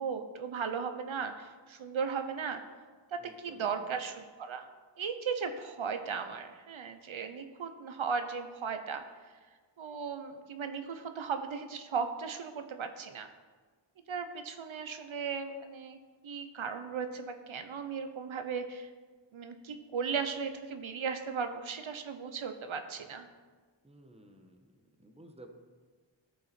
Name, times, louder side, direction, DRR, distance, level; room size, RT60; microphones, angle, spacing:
voice 1, 0.0-2.6 3.1-4.7 5.0-9.0 9.8-13.3 14.1-16.0 16.2-18.9 19.3-23.3, right 6 dB, 80° right, 7 dB, 0.8 m, -36 dB
voice 2, 3.2-3.9 23.8-24.7 25.0-25.5, right 1 dB, 15° right, 5 dB, 1.0 m, -54 dB
14.0 x 5.6 x 4.3 m, 1.4 s
wide cardioid pair, 75°, 47 cm